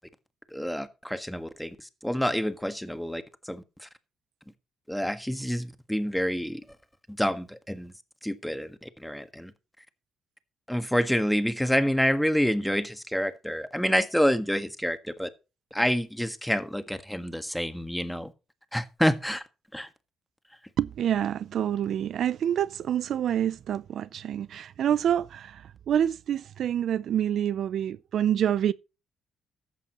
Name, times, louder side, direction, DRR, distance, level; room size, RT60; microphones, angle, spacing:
voice 1, 0.5-3.9 4.9-6.6 7.2-7.9 8.2-9.5 10.7-15.3 15.7-18.3 18.7-19.4 19.7-19.9, equal, ahead, 1.5 m, -28 dB
voice 2, 20.8-28.7, right 10 dB, 65° right, 0.5 m, -27 dB
14.5 x 11.0 x 3.0 m
cardioid pair, 90°, 0 cm